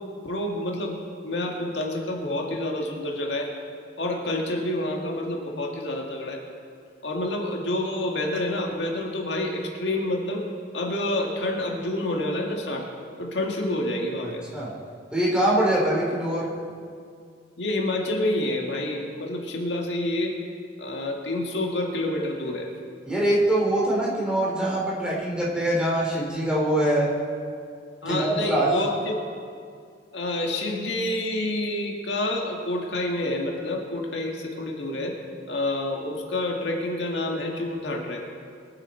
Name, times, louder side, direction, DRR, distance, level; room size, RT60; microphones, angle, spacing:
voice 1, 0.2-1.0 1.2-3.5 4.0-6.4 7.0-10.4 10.7-12.9 13.2-14.4 17.6-20.3 20.8-22.7 28.0-29.2 30.1-35.2 35.5-38.2, left 1 dB, 75° left, 0 dB, 1.9 m, -28 dB
voice 2, 14.2-14.7 15.1-16.5 23.0-27.1 28.0-28.7, right 1 dB, 5° right, -6 dB, 3.4 m, -23 dB
23.0 x 9.0 x 4.4 m, 2.2 s
head